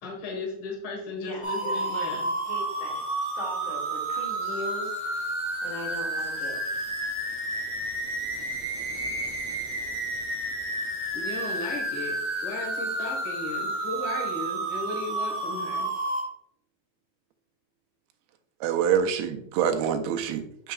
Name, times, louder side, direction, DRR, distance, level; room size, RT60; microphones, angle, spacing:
voice 1, 0.0-2.3 11.1-15.9, left 3 dB, 75° left, 0 dB, 1.1 m, -36 dB
voice 2, 1.1-3.1 3.3-5.3 5.6-6.6, left 2 dB, 55° left, -3 dB, 3.3 m, -39 dB
sound 1, 1.4-16.2, right 2 dB, 15° right, 0.6 m, -31 dB
voice 3, 18.6-20.7, right 8 dB, 80° right, 7 dB, 2.4 m, -26 dB
6.8 x 6.3 x 2.3 m, 0.72 s
omnidirectional pair, 4.6 m